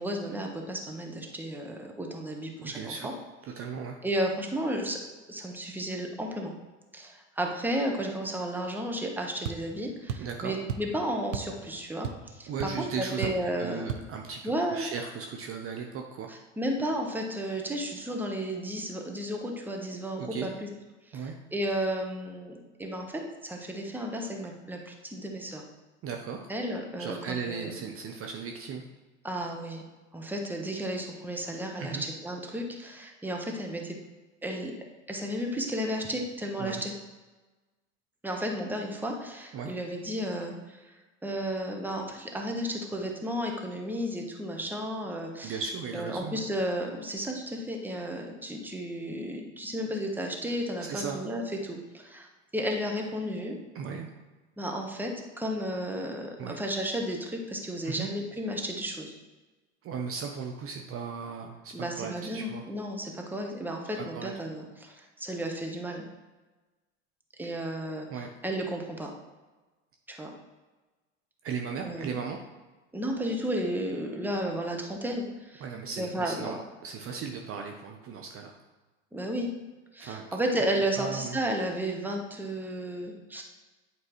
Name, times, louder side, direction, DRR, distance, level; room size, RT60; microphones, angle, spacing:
voice 1, 0.0-3.1 4.0-5.0 5.3-6.5 6.9-12.5 12.8-13.9 14.4-14.9 16.3-20.7 21.1-25.6 26.5-27.7 29.2-29.8 30.1-34.0 34.4-34.7 35.1-36.9 38.2-41.0 41.2-45.6 45.9-52.3 52.5-53.6 54.6-55.1 55.4-59.1 61.7-66.0 67.4-69.1 70.1-70.3 71.8-72.2 72.9-75.6 76.0-76.6 79.1-79.5 79.9-83.4, equal, 5° right, 1 dB, 1.1 m, -33 dB
voice 2, 2.6-3.1 3.4-4.0 10.2-10.5 12.5-13.3 13.6-16.3 20.2-20.5 21.1-21.3 26.0-26.5 27.0-28.8 31.8-32.0 36.6-36.8 39.5-39.7 45.4-46.4 50.8-51.2 53.7-54.1 56.4-56.6 57.8-58.1 59.8-62.6 64.0-64.3 67.4-67.6 68.1-68.3 71.4-72.4 75.6-76.6 76.8-78.5 80.0-80.3 81.0-81.4, right 6 dB, 35° right, 3 dB, 0.7 m, -36 dB
sound 1, 9.4-9.6 10.1-10.3 10.7-10.9 11.3-11.6 11.8-12.3 12.6-12.7 13.2-13.5 13.9-14.1, right 8 dB, 85° right, 0.6 m, -34 dB
8.6 x 4.6 x 3.0 m, 1.2 s
hypercardioid pair, 85°, 37 cm